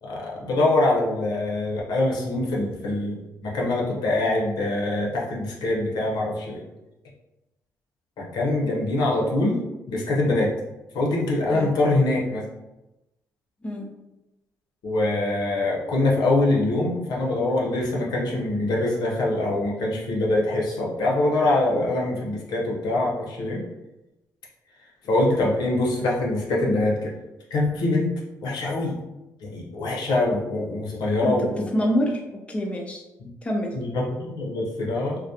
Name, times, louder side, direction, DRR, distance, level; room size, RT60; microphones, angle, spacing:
voice 1, 0.0-6.6 8.2-10.5 10.9-12.4 14.8-23.6 25.0-27.1 27.5-28.1 28.4-29.0 29.4-31.7 33.2-33.3 33.7-35.2, left 2 dB, 70° left, -2 dB, 0.6 m, -24 dB
voice 2, 31.2-32.2 32.5-33.0 33.4-33.7, equal, 15° left, 0 dB, 0.5 m, -26 dB
2.2 x 2.1 x 2.7 m, 0.98 s
supercardioid pair, 65°, 7 cm